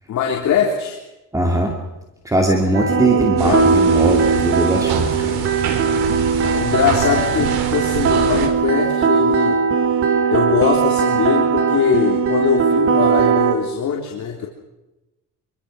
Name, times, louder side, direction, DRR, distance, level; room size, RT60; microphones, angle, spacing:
voice 1, 0.1-1.0 3.0-3.7 6.5-9.6 10.3-14.5, left 7 dB, 50° left, 0 dB, 3.4 m, -21 dB
voice 2, 1.3-1.8 2.2-5.4, right 1 dB, 10° right, 2 dB, 2.5 m, -20 dB
sound 1, 2.7-13.5, right 6 dB, 35° right, 2.8 m, -18 dB
sound 2, 3.4-8.5, right 7 dB, 85° right, 4.7 m, -26 dB
26.0 x 23.5 x 6.3 m, 1.0 s
cardioid pair, 160°, 37 cm